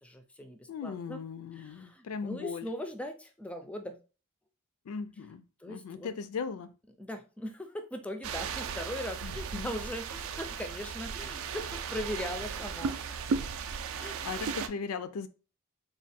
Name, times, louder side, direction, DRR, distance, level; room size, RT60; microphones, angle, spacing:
voice 1, 0.0-1.2 1.5-4.0 5.6-6.1 7.0-13.0 14.0-14.3, left 1 dB, 5° left, 0.3 m, -40 dB
voice 2, 0.7-2.7 4.9-6.7 9.2-9.7 14.0-15.3, left 5 dB, 75° left, 0.4 m, -38 dB
sound 1, 8.2-14.7, right 6 dB, 65° right, 0.4 m, -36 dB
3.5 x 2.2 x 4.1 m
head